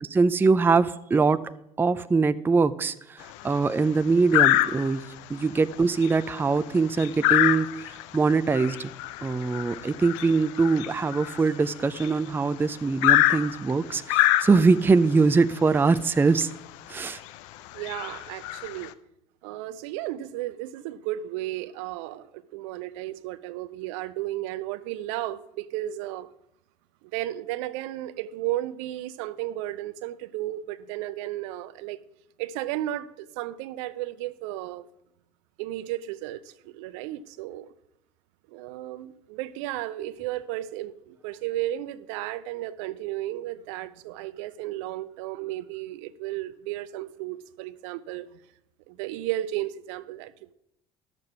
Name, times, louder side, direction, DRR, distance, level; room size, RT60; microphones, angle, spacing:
voice 1, 0.0-1.4 1.8-3.2 3.4-8.9 9.2-16.5 16.9-17.2, right 4 dB, 10° right, 0.4 m, -23 dB
sound 1, 3.2-3.6 4.3-5.1 5.6-5.7 6.0-12.3 13.0-14.9 15.9-16.0 16.4-16.5 17.1-17.3 17.7-18.9, left 15 dB, 60° left, 0.5 m, -25 dB
voice 2, 17.7-18.9 19.4-26.3 27.1-32.0 32.4-34.8 35.6-37.7 38.5-48.3 48.9-50.5, right 14 dB, 60° right, 0.6 m, -34 dB
12.0 x 6.8 x 5.9 m
figure-of-eight pair, 60°, 18 cm